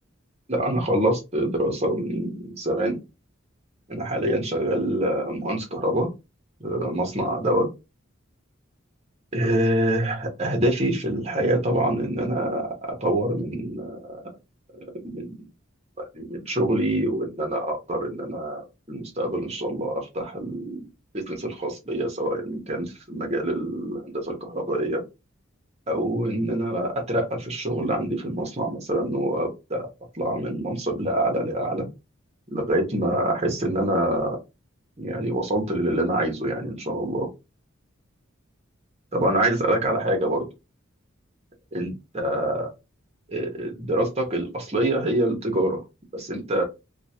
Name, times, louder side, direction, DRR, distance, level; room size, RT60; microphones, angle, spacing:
voice 1, 0.5-3.0 3.9-6.1 6.6-7.7 9.3-14.2 14.8-15.4 16.0-20.8 21.1-25.0 25.9-29.9 30.1-31.9 32.5-34.4 35.0-37.3 39.1-40.4 41.7-42.7 43.3-45.8 46.1-46.6, right 1 dB, 30° right, 2 dB, 1.1 m, -26 dB
3.0 x 2.5 x 2.8 m, 0.25 s
head